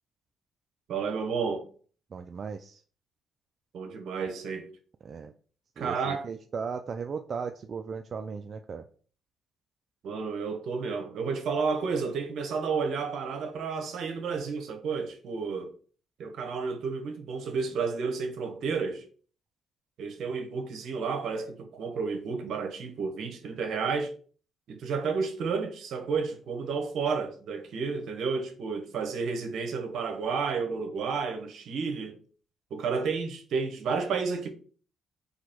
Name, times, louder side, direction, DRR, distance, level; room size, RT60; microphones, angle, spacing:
voice 1, 0.9-1.7 3.7-4.7 5.8-6.3 10.0-15.7 16.2-19.0 20.0-24.1 24.7-32.2 32.7-34.5, right 5 dB, 70° right, 1.0 m, -31 dB
voice 2, 2.1-2.8 5.0-5.3 5.8-8.8, right 5 dB, 45° right, 0.3 m, -36 dB
4.0 x 2.8 x 4.3 m
cardioid pair, 90°, 0 cm